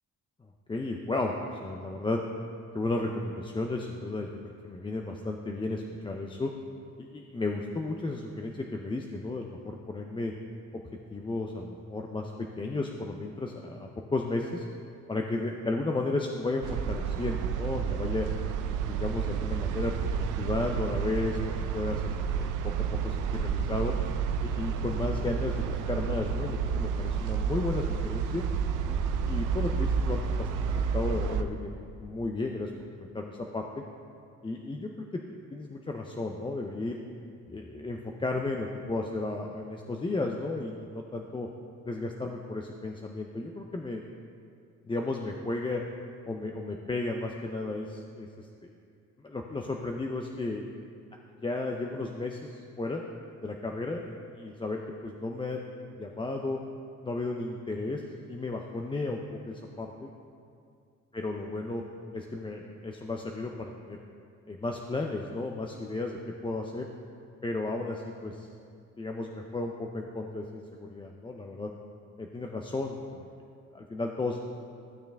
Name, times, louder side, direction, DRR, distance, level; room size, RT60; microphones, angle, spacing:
voice 1, 0.7-2.2 2.7-4.3 4.6-6.5 7.0-10.3 11.1-14.7 15.1-18.3 18.8-22.7 23.0-23.9 24.4-28.4 28.9-32.7 33.0-33.7 34.4-35.2 35.5-37.0 37.5-41.5 41.8-44.0 44.9-45.8 46.3-48.7 49.2-50.7 51.4-53.0 53.4-56.6 57.0-58.0 58.3-60.1 61.1-61.8 62.1-64.0 64.5-66.9 67.4-68.5 69.0-71.7 72.2-73.2 73.7-74.4, left 2 dB, 15° left, 1 dB, 0.6 m, -34 dB
sound 1, 16.6-31.4, right 6 dB, 90° right, 0.6 m, -30 dB
14.5 x 6.5 x 3.5 m, 2.3 s
cardioid pair, 90°, 30 cm